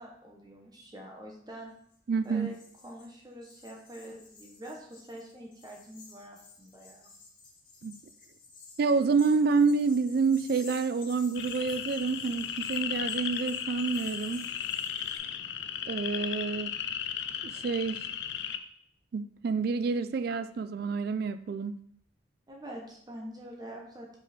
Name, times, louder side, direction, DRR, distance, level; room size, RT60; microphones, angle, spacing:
voice 1, 0.0-1.7 2.2-2.5 2.8-7.1 22.5-24.2, right 1 dB, 20° right, 0 dB, 0.8 m, -45 dB
sound 1, 1.9-2.0 2.2-15.2, left 4 dB, 45° left, 2.0 m, -52 dB
voice 2, 2.1-2.5 7.8-7.9 8.8-14.5 15.9-16.8 17.4-18.1 19.1-21.7, right 4 dB, 50° right, 12 dB, 0.3 m, -28 dB
sound 2, 11.3-18.6, left 9 dB, 65° left, 0.4 m, -35 dB
5.4 x 5.0 x 4.1 m, 0.66 s
head